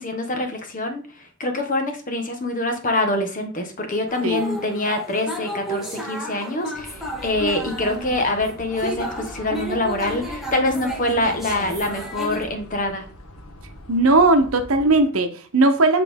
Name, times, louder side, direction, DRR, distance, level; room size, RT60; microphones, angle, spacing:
voice 1, 0.0-13.0, left 2 dB, 40° left, 5 dB, 1.1 m, -25 dB
sound 1, 4.1-12.4, equal, ahead, 1.2 m, -32 dB
sound 2, 6.8-15.0, equal, 85° left, 1.1 m, -42 dB
voice 2, 13.9-16.0, right 2 dB, 70° right, 7 dB, 0.8 m, -18 dB
8.3 x 3.3 x 3.5 m, 0.39 s
head